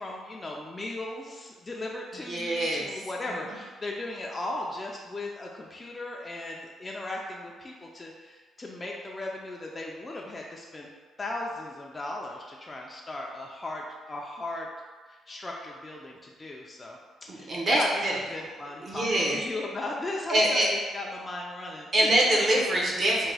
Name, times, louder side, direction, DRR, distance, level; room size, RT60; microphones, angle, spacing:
voice 1, 0.0-10.9 11.2-14.7 15.1-17.0 17.3-17.9 18.3-22.1, left 2 dB, 25° left, -2 dB, 0.4 m, -37 dB
voice 2, 2.1-3.0 3.3-3.4 17.3-18.2 18.8-19.4 20.3-20.7 21.9-23.3, right 1 dB, 50° right, -2 dB, 0.8 m, -25 dB
3.5 x 2.2 x 3.3 m, 1.4 s
cardioid pair, 90°, 0 cm